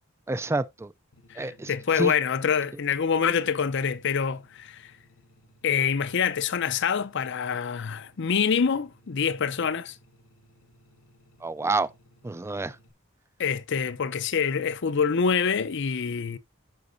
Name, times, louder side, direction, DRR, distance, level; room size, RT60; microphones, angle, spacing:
voice 1, 0.3-0.9 1.4-1.7 2.0-2.1 11.4-11.9 12.2-12.8, right 3 dB, 15° right, 0.3 m, -28 dB
sound 1, 1.1-12.9, equal, 75° left, 1.2 m, -60 dB
voice 2, 1.3-4.9 5.6-10.0 13.4-16.4, left 6 dB, 60° left, 0.6 m, -26 dB
13.0 x 5.2 x 2.6 m
head